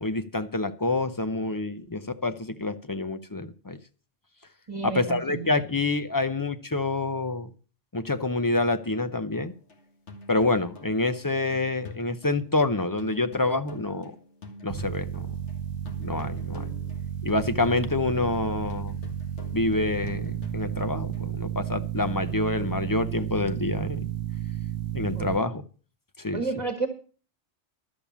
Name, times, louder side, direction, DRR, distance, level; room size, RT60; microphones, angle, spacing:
voice 1, 0.0-3.8 4.8-7.5 7.9-9.5 10.3-14.2 14.6-15.3 16.0-16.7 17.2-19.0 19.5-24.1 24.9-25.6 26.2-26.4, left 2 dB, 25° left, 11 dB, 0.5 m, -27 dB
voice 2, 4.7-5.5 16.5-16.8 25.1-25.3 26.3-26.9, right 4 dB, 30° right, 5 dB, 1.3 m, -31 dB
sound 1, 9.3-15.6 15.9-21.3, left 3 dB, 70° left, 2.0 m, -47 dB
sound 2, 14.7-25.4, right 10 dB, 80° right, 1.1 m, -32 dB
12.0 x 7.0 x 7.2 m, 0.38 s
omnidirectional pair, 1.2 m